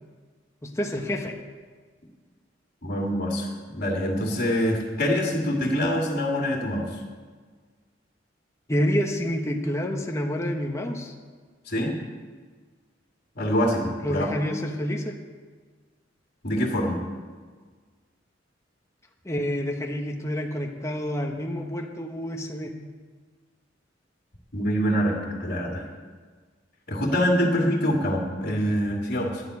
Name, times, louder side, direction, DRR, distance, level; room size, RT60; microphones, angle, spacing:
voice 1, 0.6-1.3 8.7-11.1 14.0-15.1 19.2-22.7, equal, 15° left, 1 dB, 1.1 m, -28 dB
voice 2, 2.8-6.9 11.7-12.0 13.4-14.3 16.4-17.0 24.5-25.8 26.9-29.4, equal, 55° left, -1 dB, 2.2 m, -25 dB
11.0 x 7.6 x 9.5 m, 1.5 s
head